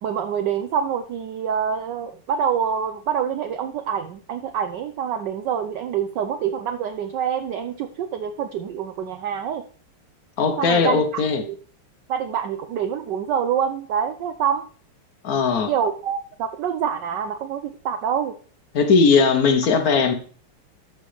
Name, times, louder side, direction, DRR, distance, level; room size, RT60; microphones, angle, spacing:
voice 1, 0.0-9.6 10.6-11.6 12.1-14.7 15.7-18.4, right 8 dB, 70° right, 1.1 m, -26 dB
voice 2, 10.4-11.4 15.2-15.7 18.7-20.1, left 5 dB, 55° left, 1.1 m, -18 dB
13.5 x 5.2 x 3.2 m
omnidirectional pair, 2.4 m